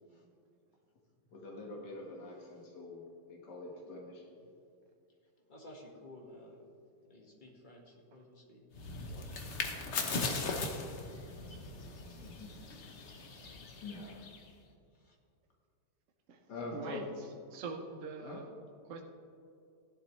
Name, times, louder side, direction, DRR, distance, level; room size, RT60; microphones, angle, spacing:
voice 1, 1.3-4.2 12.2-12.5 13.8-14.1 16.5-17.0 18.2-18.4, left 2 dB, 75° left, -2 dB, 2.2 m, -44 dB
voice 2, 5.4-6.6 7.0-8.6 9.1-9.5 11.4-11.8 12.4-12.6 14.4-14.5 14.9-15.2, left 1 dB, 30° left, -1 dB, 1.8 m, -55 dB
sound 1, 8.7-14.5, left 3 dB, 45° left, 1.2 m, -39 dB
voice 3, 16.7-18.5 18.8-19.0, right 4 dB, 55° right, 3 dB, 1.0 m, -44 dB
15.5 x 11.0 x 3.2 m, 2.5 s
omnidirectional pair, 1.8 m